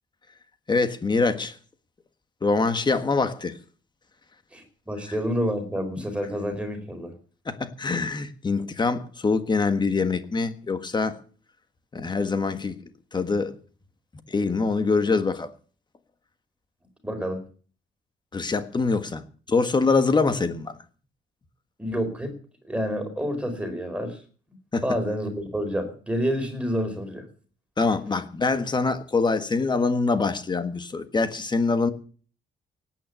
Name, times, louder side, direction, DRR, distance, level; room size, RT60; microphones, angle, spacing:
voice 1, 0.7-1.5 2.4-3.5 7.4-11.2 11.9-12.8 13.1-13.5 14.3-15.5 18.3-20.8 24.7-24.8 27.8-31.9, left 4 dB, 25° left, 1.5 m, -24 dB
voice 2, 4.5-7.1 17.0-17.4 21.8-22.3 22.6-24.2 24.8-27.2, equal, 5° right, 4.4 m, -28 dB
18.0 x 9.2 x 8.4 m
wide cardioid pair, 170°, 19 cm